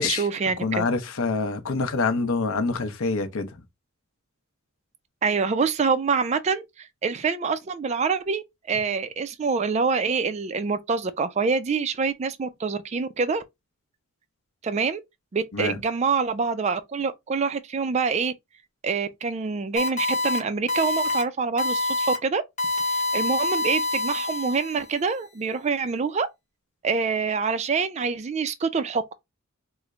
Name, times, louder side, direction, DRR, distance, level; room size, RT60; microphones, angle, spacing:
voice 1, 0.0-0.9 5.2-13.4 14.6-15.0 15.3-18.3 18.8-22.4 22.9-26.3 26.8-29.0, right 5 dB, 30° right, 0.3 m, -26 dB
voice 2, 0.6-3.5 15.5-15.8, left 4 dB, 75° left, 0.6 m, -26 dB
sound 1, 19.8-20.4 20.7-21.2 21.6-22.2 22.6-24.9, left 2 dB, 35° left, 0.8 m, -26 dB
3.1 x 2.1 x 3.5 m
head